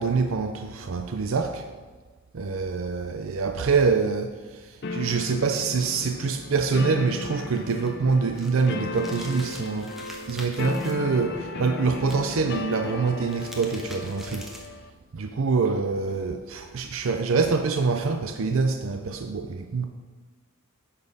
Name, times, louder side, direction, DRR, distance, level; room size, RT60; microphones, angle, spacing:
voice 1, 0.0-1.7 2.3-9.9 10.3-14.5 15.1-19.8, right 4 dB, 65° right, 6 dB, 0.5 m, -25 dB
sound 1, 4.8-14.9, left 3 dB, 50° left, 0.5 m, -36 dB
sound 2, 7.5-10.9 12.0-12.6 13.1-14.8, equal, ahead, 0.9 m, -44 dB
10.5 x 4.2 x 5.4 m, 1.3 s
head